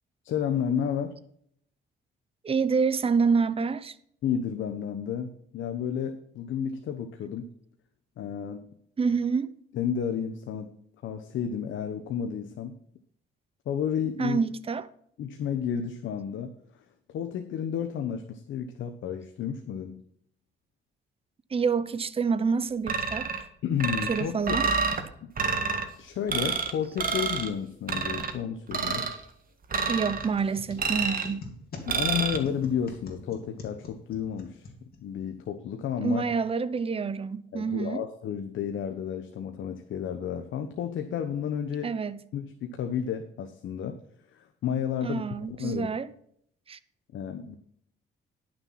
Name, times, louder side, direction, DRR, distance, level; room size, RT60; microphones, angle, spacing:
voice 1, 0.2-1.2 4.2-7.5 8.2-8.7 9.7-10.7 11.0-12.8 13.7-14.4 15.2-16.5 17.1-20.0 23.6-24.6 25.2-25.3 26.0-29.1 31.8-34.7 35.0-36.2 37.5-41.9 42.3-44.0 44.3-45.2 45.6-45.9 47.1-47.6, left 8 dB, 75° left, 1.1 m, -31 dB
voice 2, 2.4-4.0 9.0-9.6 14.2-14.9 21.5-23.3 24.1-24.7 29.9-31.5 36.0-38.0 41.8-42.2 45.0-46.1 46.7-46.8, right 5 dB, 30° right, 0.8 m, -27 dB
sound 1, 22.9-23.4 23.8-25.0 25.4-25.8 26.3-26.7 27.0-27.5 27.9-28.3 28.7-29.2 29.7-30.3 30.8-31.3 31.9-32.4, right 5 dB, 45° right, 1.7 m, -28 dB
sound 2, 30.2-35.3, left 3 dB, 50° left, 2.9 m, -44 dB
11.0 x 6.6 x 5.8 m
cardioid pair, 90°, 20 cm